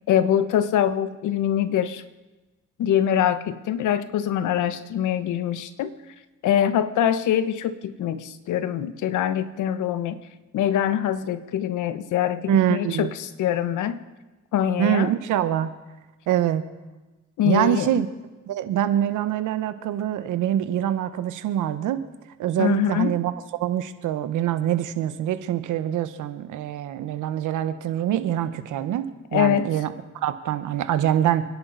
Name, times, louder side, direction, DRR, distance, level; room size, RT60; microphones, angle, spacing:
voice 1, 0.1-2.0 2.8-5.9 6.4-10.2 10.5-14.0 14.5-15.1 17.4-17.9 22.6-23.2 29.3-29.7, left 10 dB, 80° left, 12 dB, 1.1 m, -24 dB
voice 2, 12.5-13.1 14.8-15.7 16.3-16.6 17.4-18.1 18.5-22.0 22.4-23.3 23.6-29.9 30.2-31.4, right 11 dB, 85° right, 11 dB, 1.2 m, -24 dB
29.0 x 10.5 x 4.1 m, 1.1 s
cardioid pair, 90°, 30 cm